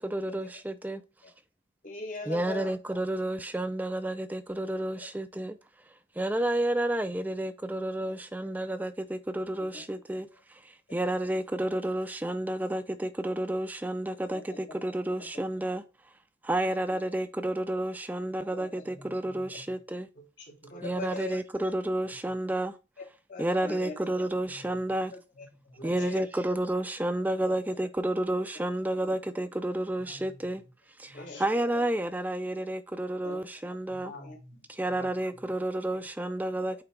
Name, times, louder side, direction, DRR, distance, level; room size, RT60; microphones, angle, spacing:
voice 1, 0.1-1.0 2.3-5.5 6.2-10.2 10.9-12.8 13.2-14.4 14.8-15.8 16.5-20.0 20.8-22.7 23.4-25.1 25.8-30.6 31.4-34.1 34.8-36.7, right 1 dB, 10° right, 0.3 m, -30 dB
voice 2, 1.8-2.7 5.0-5.1 9.7-9.8 10.3-10.4 10.9-11.0 14.2-14.8 15.2-15.3 16.9-17.1 18.5-18.9 20.7-21.4 23.0-24.0 25.1-25.5 25.8-26.2 27.4-27.6 29.0-29.2 31.1-31.4 31.7-31.9 33.2-33.4 34.2-34.4 35.9-36.0, left 3 dB, 45° left, 0.9 m, -42 dB
voice 3, 18.7-19.8 20.1-20.9 22.1-22.4 24.3-24.9 25.3-26.3 29.9-30.5 31.0-31.7 33.9-35.5 35.9-36.0, left 1 dB, 85° left, 2.8 m, -51 dB
8.7 x 3.4 x 4.4 m
head